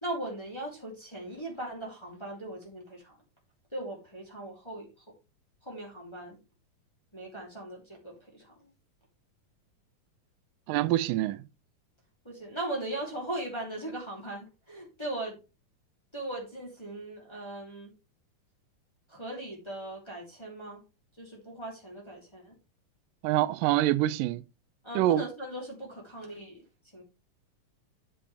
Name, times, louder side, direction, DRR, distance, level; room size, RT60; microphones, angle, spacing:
voice 1, 0.0-3.2 3.7-4.9 5.6-6.4 7.1-8.7 12.2-15.4 16.1-17.9 19.1-20.8 21.2-22.6 24.8-26.6 26.9-27.0, right 1 dB, 10° left, 2.7 m, -39 dB
voice 2, 10.7-11.5 23.2-24.4 25.0-25.2, right 15 dB, 90° right, 2.2 m, -25 dB
8.6 x 7.5 x 3.3 m
omnidirectional pair, 3.8 m